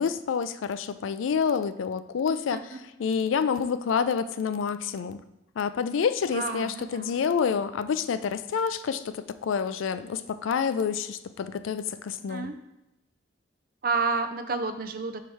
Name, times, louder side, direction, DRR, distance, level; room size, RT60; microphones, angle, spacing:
voice 1, 0.0-2.6 3.0-5.2 5.6-12.5, left 6 dB, 85° left, 12 dB, 0.4 m, -28 dB
voice 2, 2.3-2.8 6.3-7.2 12.3-12.6 13.8-15.2, right 4 dB, 50° right, 8 dB, 0.5 m, -30 dB
4.7 x 4.5 x 5.5 m, 0.94 s
head